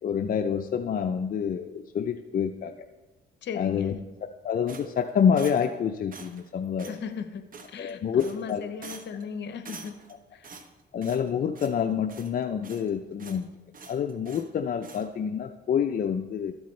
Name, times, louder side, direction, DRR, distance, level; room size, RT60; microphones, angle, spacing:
voice 1, 0.0-2.7 3.5-3.9 4.4-6.9 7.8-8.6 10.9-13.5 13.9-16.5, left 7 dB, 45° left, 6 dB, 0.5 m, -27 dB
voice 2, 3.4-4.0 6.9-9.9 10.3-10.6, left 6 dB, 60° left, 9 dB, 0.8 m, -37 dB
sound 1, 4.7-5.8 6.1-6.5 6.8-7.0 7.5-7.9 8.2-8.5 8.8-9.2 9.6-10.1 10.4-11.3 11.5-11.8 12.1-12.9 13.2-13.4 13.7-14.5 14.8-15.1, right 4 dB, 45° right, 1.0 m, -46 dB
12.5 x 8.0 x 3.2 m, 1.2 s
cardioid pair, 90°, 20 cm